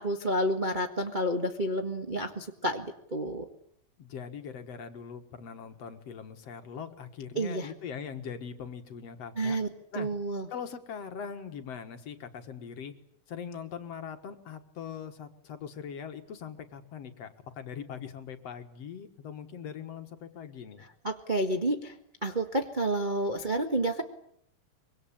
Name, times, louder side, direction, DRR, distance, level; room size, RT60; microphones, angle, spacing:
voice 1, 0.0-3.5 7.3-7.7 9.4-9.7 9.9-10.5 21.0-21.9 22.2-24.0, right 1 dB, 70° right, 3 dB, 0.4 m, -30 dB
voice 2, 4.0-9.6 9.9-10.1 10.5-12.9 13.3-20.9, left 7 dB, 55° left, 7 dB, 2.3 m, -41 dB
25.0 x 23.0 x 8.8 m, 0.69 s
omnidirectional pair, 4.0 m